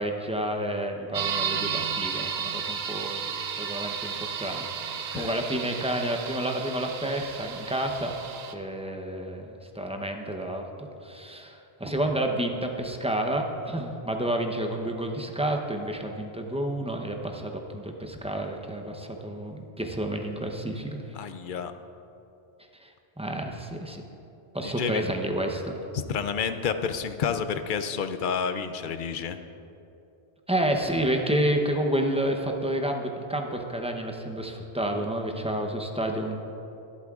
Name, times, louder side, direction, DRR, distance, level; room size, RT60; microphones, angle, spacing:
voice 1, 0.0-3.3 3.6-8.1 8.5-21.0 22.8-22.9 23.2-24.0 24.5-25.7 30.5-36.4, right 1 dB, 5° right, 2 dB, 0.6 m, -30 dB
sound 1, 1.1-8.5, right 7 dB, 75° right, 0.9 m, -33 dB
voice 2, 4.9-5.3 21.1-21.7 24.6-25.0 26.1-29.4, left 6 dB, 60° left, 9 dB, 0.6 m, -30 dB
23.0 x 8.3 x 2.4 m, 2.9 s
omnidirectional pair, 1.1 m